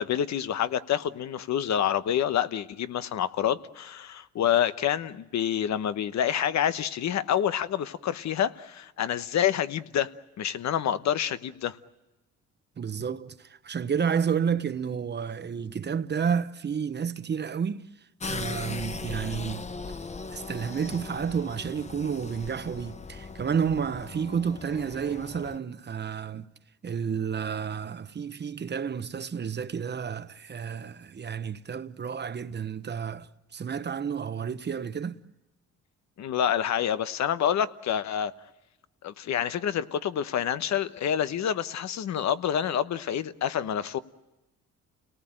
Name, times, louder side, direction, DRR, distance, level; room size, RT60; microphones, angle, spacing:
voice 1, 0.0-11.8 36.2-38.3 39.0-44.0, left 9 dB, 65° left, 1.1 m, -27 dB
voice 2, 12.8-17.9 18.2-19.6 20.3-26.5 26.8-35.2, right 7 dB, 35° right, 1.0 m, -31 dB
sound 1, 18.2-25.6, left 4 dB, 20° left, 0.8 m, -39 dB
29.5 x 18.5 x 8.9 m
cardioid pair, 90°, 30 cm